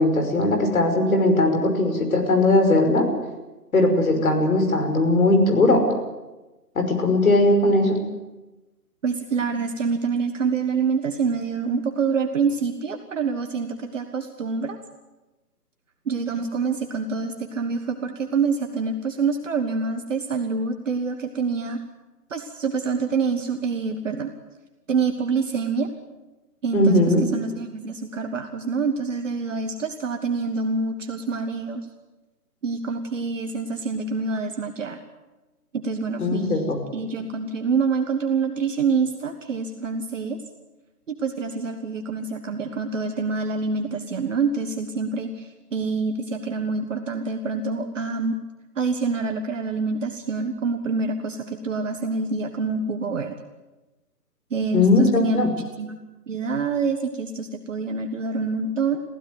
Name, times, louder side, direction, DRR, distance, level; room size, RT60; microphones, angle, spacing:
voice 1, 0.0-3.1 3.7-5.8 6.8-8.0 26.7-27.2 36.2-36.8 54.7-55.5, left 2 dB, 60° left, 5 dB, 5.7 m, -19 dB
voice 2, 9.0-14.8 16.0-21.8 22.3-24.3 24.9-25.9 26.6-31.9 32.6-35.0 35.7-40.4 41.1-48.4 48.7-53.3 54.5-55.5 55.8-56.0 56.3-59.0, right 4 dB, 50° right, 6 dB, 1.6 m, -26 dB
23.0 x 15.5 x 9.4 m, 1.1 s
hypercardioid pair, 170°, 48 cm